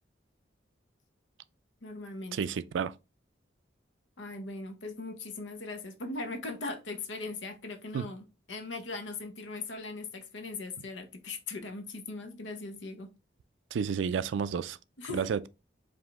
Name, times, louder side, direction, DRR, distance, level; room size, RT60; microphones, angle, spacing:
voice 1, 1.8-2.4 4.2-13.1 15.0-15.3, left 3 dB, 85° left, 0.9 m, -39 dB
voice 2, 2.3-2.9 7.9-8.1 13.7-14.8 15.1-15.5, right 6 dB, 80° right, 0.3 m, -31 dB
4.9 x 2.7 x 3.4 m
head